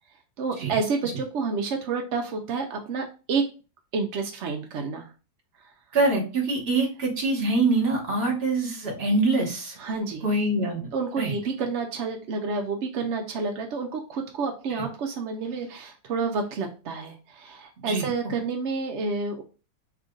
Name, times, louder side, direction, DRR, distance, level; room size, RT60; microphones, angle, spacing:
voice 1, 0.4-3.4 3.9-5.1 9.8-10.2 10.9-19.4, right 4 dB, 70° right, 3 dB, 0.6 m, -29 dB
voice 2, 5.9-9.7 10.2-10.9 11.2-11.3 14.8-14.9 17.8-18.1, right 2 dB, 40° right, 0 dB, 1.4 m, -24 dB
3.5 x 2.4 x 3.7 m, 0.34 s
omnidirectional pair, 1.8 m